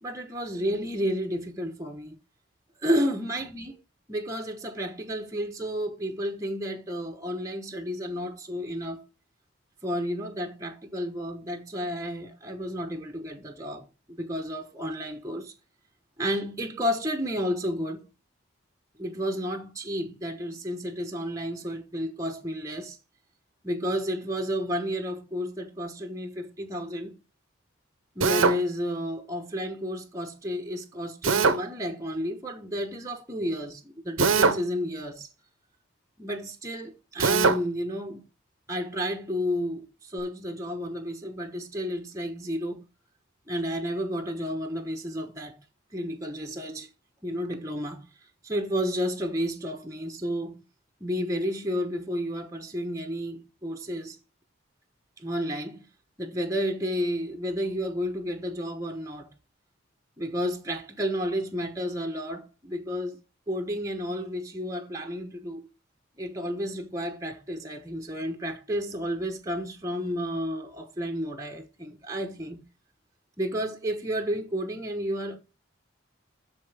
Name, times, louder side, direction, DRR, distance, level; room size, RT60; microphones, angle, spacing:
voice 1, 0.0-2.2 2.8-3.8 4.1-9.0 9.8-15.5 16.2-18.1 19.0-23.0 23.6-27.2 28.2-35.3 36.2-38.2 38.7-42.8 43.5-45.6 45.9-46.9 47.2-48.1 48.4-50.6 51.0-54.2 55.2-55.9 56.2-59.3 60.2-63.2 63.5-65.7 66.2-72.6 73.4-75.4, equal, 15° right, 1.1 m, -31 dB
Drill, 28.2-28.6 31.2-31.6 34.2-34.6 37.2-37.6, right 5 dB, 80° right, 0.8 m, -21 dB
13.0 x 4.4 x 3.4 m
head